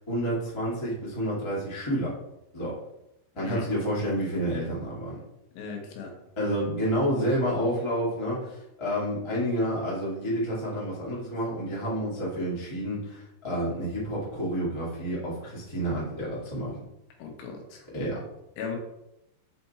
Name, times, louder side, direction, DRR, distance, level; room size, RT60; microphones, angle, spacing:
voice 1, 0.1-2.1 2.5-2.7 3.3-5.1 6.4-16.7 17.9-18.2, equal, 30° left, -7 dB, 0.5 m, -29 dB
voice 2, 5.5-6.1 17.2-17.9 18.6-18.8, left 6 dB, 80° left, 2 dB, 3.2 m, -37 dB
5.7 x 5.2 x 4.3 m, 0.88 s
omnidirectional pair, 4.9 m